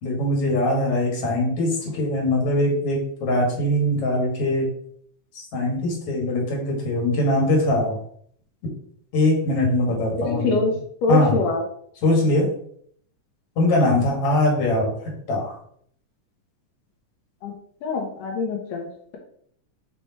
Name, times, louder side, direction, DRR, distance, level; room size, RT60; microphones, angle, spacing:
voice 1, 0.0-4.7 5.5-8.0 9.1-10.6 11.1-11.3 12.0-12.5 13.6-14.9 15.3-15.6, left 1 dB, 50° left, -2 dB, 2.8 m, -21 dB
voice 2, 10.2-10.7 11.0-11.6 17.4-17.5 17.8-19.2, left 3 dB, 85° left, 0 dB, 2.6 m, -24 dB
4.9 x 4.6 x 4.3 m, 0.63 s
omnidirectional pair, 3.7 m